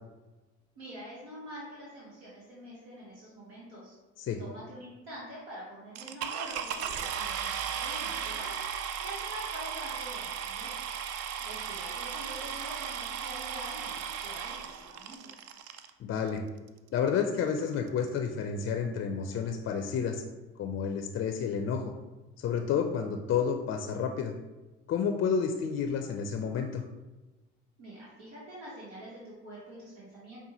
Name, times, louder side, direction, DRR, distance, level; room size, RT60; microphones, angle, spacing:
voice 1, 0.8-4.0 4.4-8.6 9.0-10.7 11.4-15.3 27.8-30.4, equal, 80° right, -7 dB, 1.1 m, -45 dB
sound 1, 5.9-15.9 16.7-16.8 17.3-17.4 17.6-17.9, right 8 dB, 50° right, 0.4 m, -36 dB
voice 2, 16.0-16.4 16.9-20.2 20.6-21.9 22.4-24.3 24.9-26.9, left 6 dB, 40° left, 5 dB, 0.4 m, -30 dB
5.3 x 2.2 x 2.9 m, 1.2 s
hypercardioid pair, 60°, 32 cm